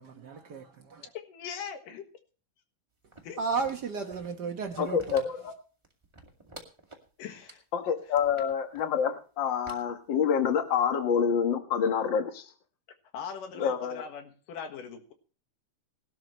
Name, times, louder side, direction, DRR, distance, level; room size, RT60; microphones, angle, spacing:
voice 1, 0.0-1.1 3.4-5.2, right 5 dB, 75° right, 0.9 m, -34 dB
voice 2, 1.3-2.0 3.2-3.4 7.2-7.6 13.1-15.1, left 7 dB, 80° left, 3.3 m, -41 dB
sound 1, 3.1-4.4 4.8-5.5 5.8-7.1 7.5-7.6 8.1-8.8 9.6-10.6 10.9-11.0, right 2 dB, 10° right, 1.7 m, -49 dB
voice 3, 4.8-5.5 7.7-12.4 13.5-14.0, left 7 dB, 45° left, 1.7 m, -27 dB
20.0 x 12.5 x 3.2 m
omnidirectional pair, 3.7 m